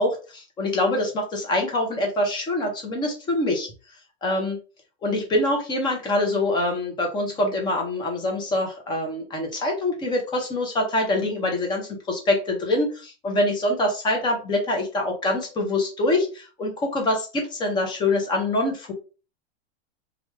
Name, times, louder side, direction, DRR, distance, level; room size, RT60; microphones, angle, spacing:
voice 1, 0.0-3.7 4.2-4.6 5.0-18.9, left 1 dB, 15° left, 1 dB, 0.7 m, -25 dB
3.3 x 2.4 x 3.1 m, 0.34 s
supercardioid pair, 170°, 32 cm